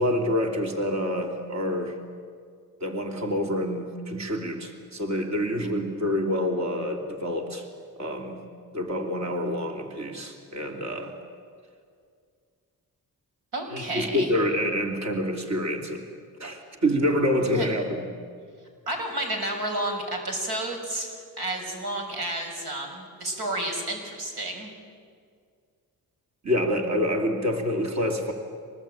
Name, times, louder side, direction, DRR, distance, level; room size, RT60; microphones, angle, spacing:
voice 1, 0.0-2.0 2.8-7.7 8.0-8.4 8.7-11.1 13.7-16.0 16.4-18.1 26.4-28.3, equal, 45° right, 3 dB, 3.3 m, -27 dB
voice 2, 13.5-14.3 17.5-17.7 18.9-24.7, right 1 dB, 75° right, 2 dB, 5.9 m, -31 dB
26.0 x 19.5 x 8.9 m, 2.1 s
cardioid pair, 60°, 38 cm